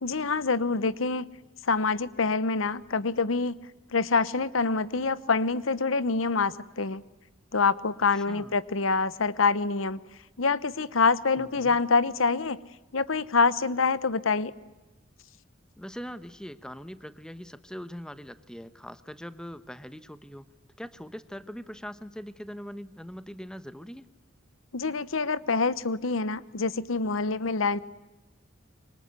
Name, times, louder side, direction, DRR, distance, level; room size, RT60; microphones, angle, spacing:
voice 1, 0.0-1.3 1.6-3.6 3.9-7.0 7.5-10.0 10.4-12.6 12.9-14.5 24.7-27.8, left 4 dB, 85° left, 16 dB, 1.0 m, -26 dB
voice 2, 8.1-8.6 11.4-11.8 15.8-20.5 20.8-24.1, equal, 5° left, 12 dB, 1.1 m, -42 dB
25.5 x 24.5 x 9.6 m, 1.1 s
head